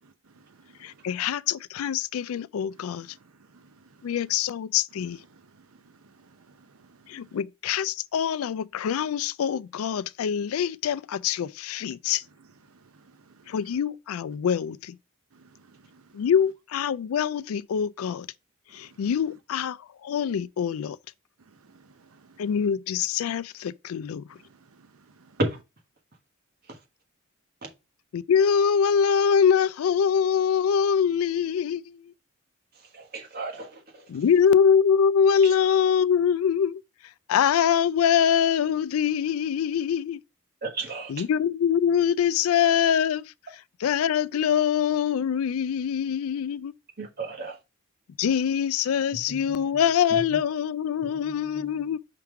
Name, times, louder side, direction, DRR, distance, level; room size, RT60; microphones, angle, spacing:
voice 1, 0.8-3.1 4.0-5.2 7.1-12.2 13.5-15.0 16.1-18.3 18.7-19.8 20.0-21.0 22.4-24.2 28.1-32.0 34.1-36.8 37.3-40.2 41.1-43.2 43.8-46.7 48.2-52.0, left 7 dB, 80° left, 0.3 m, -24 dB
voice 2, 2.8-3.1 3.5-3.7 5.3-5.7 6.6-6.9 13.3-13.5 15.3-16.0 21.7-22.4 24.8-24.9, right 4 dB, 85° right, 0.7 m, -57 dB
voice 3, 32.9-33.8 40.6-41.1 47.0-47.5 49.1-49.4 50.1-50.3 51.5-51.6, right 2 dB, 45° right, 1.4 m, -32 dB
5.7 x 3.6 x 4.6 m
head